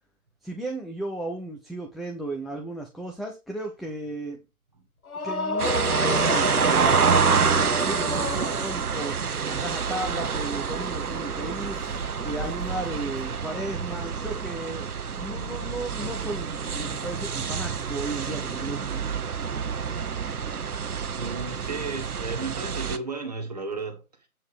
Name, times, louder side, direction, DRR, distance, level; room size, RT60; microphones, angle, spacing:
voice 1, 0.4-4.4 5.2-6.5 6.9-9.2 9.5-11.8 12.2-14.9 15.2-19.1, right 2 dB, ahead, 0.5 m, -35 dB
sound 1, 5.1-9.0, left 3 dB, 75° left, 1.2 m, -30 dB
sound 2, 5.6-23.0, right 6 dB, 85° right, 0.9 m, -27 dB
sound 3, 9.4-14.5, left 1 dB, 30° left, 2.0 m, -53 dB
voice 2, 20.5-24.3, right 3 dB, 30° right, 1.6 m, -35 dB
8.4 x 4.5 x 5.0 m
figure-of-eight pair, 170°, 43 cm